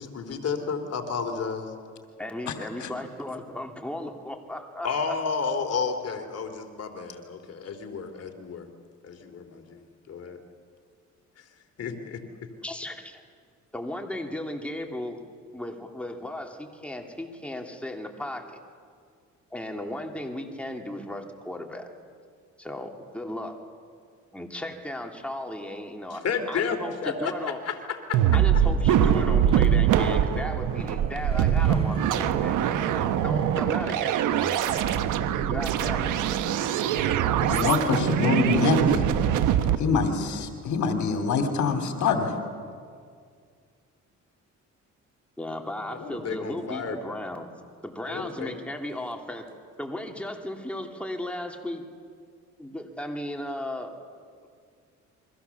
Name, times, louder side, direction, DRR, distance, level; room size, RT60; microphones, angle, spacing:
voice 1, 0.0-1.7 4.8-8.6 9.0-9.8 10.1-10.4 11.8-12.2 26.1-27.3 27.6-28.4 45.9-47.0 48.0-48.5, left 5 dB, 55° left, 6 dB, 3.0 m, -31 dB
voice 2, 2.2-5.1 12.6-13.2 13.7-15.2 15.5-18.6 19.5-21.9 22.6-23.6 24.3-27.6 28.3-34.8 35.5-36.4 45.4-47.5 47.8-49.4 49.8-51.8 52.6-53.9, left 1 dB, 5° left, 2 dB, 2.9 m, -36 dB
sound 1, 28.1-39.8, right 9 dB, 90° right, 1.3 m, -23 dB
sound 2, 29.0-39.7, right 2 dB, 20° right, 3.8 m, -43 dB
voice 3, 37.4-39.0 39.8-42.3, left 5 dB, 70° left, 6 dB, 2.9 m, -25 dB
29.5 x 23.5 x 7.1 m, 2.1 s
cardioid pair, 90°, 30 cm